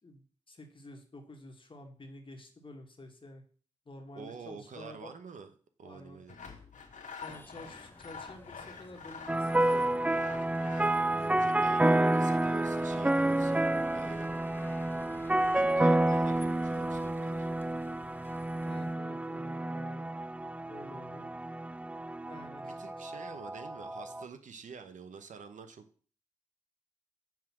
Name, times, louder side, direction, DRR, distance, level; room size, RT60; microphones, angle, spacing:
voice 1, 0.0-3.4 3.8-5.1 5.8-6.2 7.2-10.0 18.6-20.2 20.7-21.4 22.3-23.1, left 1 dB, 40° left, 3 dB, 1.8 m, -50 dB
voice 2, 4.1-5.5 5.8-6.4 11.1-14.3 15.5-17.5 22.6-25.8, right 5 dB, 70° right, 8 dB, 0.9 m, -48 dB
Sawing, 6.3-11.1, left 5 dB, 70° left, 1.4 m, -47 dB
sound 1, 7.2-18.9, left 1 dB, 15° left, 0.8 m, -53 dB
sound 2, 9.3-24.2, right 1 dB, 10° right, 0.3 m, -30 dB
7.4 x 3.7 x 6.0 m, 0.42 s
cardioid pair, 50°, 13 cm